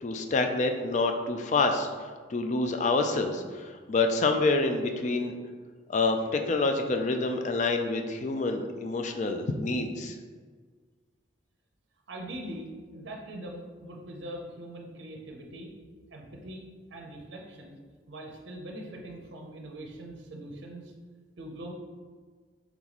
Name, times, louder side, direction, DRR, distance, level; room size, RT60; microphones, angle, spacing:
voice 1, 0.0-1.9 2.3-5.3 5.9-10.2, left 3 dB, 40° left, 5 dB, 0.3 m, -27 dB
voice 2, 12.1-15.7 16.1-16.6 16.9-17.8 18.1-20.9 21.4-21.7, right 1 dB, 70° right, 0 dB, 0.5 m, -42 dB
3.4 x 3.0 x 3.9 m, 1.5 s
head